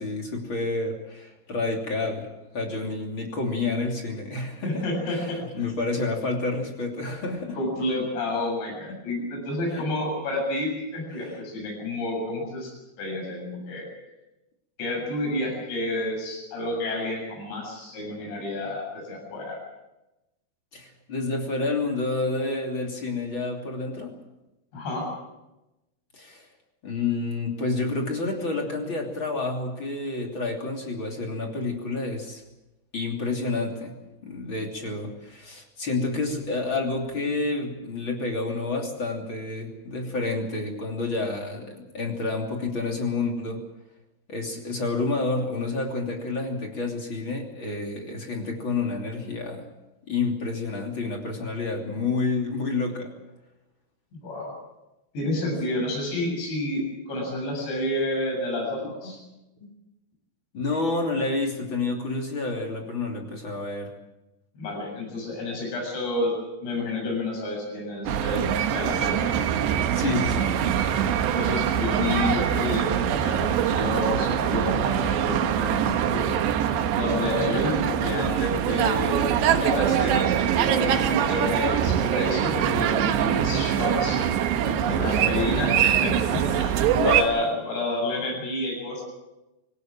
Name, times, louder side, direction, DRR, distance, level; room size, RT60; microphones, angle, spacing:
voice 1, 0.0-2.3 2.5-7.6 8.9-9.0 9.7-9.8 11.1-11.4 20.7-24.1 26.1-26.5 26.8-32.4 32.9-43.6 44.3-49.7 50.1-53.1 55.4-55.5 58.8-59.2 59.6-59.7 60.5-63.9 69.8-70.5 84.3-85.2 86.5-87.3, left 3 dB, 30° left, 1 dB, 3.1 m, -29 dB
voice 2, 4.6-5.4 7.5-12.7 13.0-13.9 14.8-19.6 24.7-25.1 54.1-54.5 55.1-59.2 64.6-66.3 66.6-69.3 71.0-72.9 73.2-76.3 76.9-84.2 84.9-86.8 87.0-89.0, left 2 dB, 80° left, 0 dB, 9.6 m, -30 dB
sound 1, 68.1-87.2, right 9 dB, 80° right, 3.4 m, -23 dB
24.0 x 18.5 x 7.5 m, 0.99 s
omnidirectional pair, 5.0 m